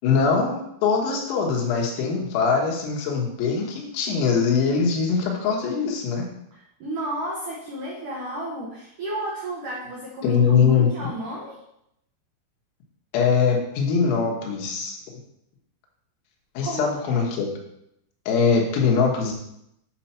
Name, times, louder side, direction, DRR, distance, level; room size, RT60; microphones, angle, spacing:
voice 1, 0.0-6.3 10.2-10.9 13.1-15.0 16.6-17.5 18.3-19.3, left 5 dB, 85° left, 0 dB, 4.2 m, -22 dB
voice 2, 6.5-11.6 16.6-17.3, right 1 dB, 85° right, -4 dB, 1.8 m, -33 dB
9.1 x 4.4 x 5.8 m, 0.80 s
omnidirectional pair, 6.0 m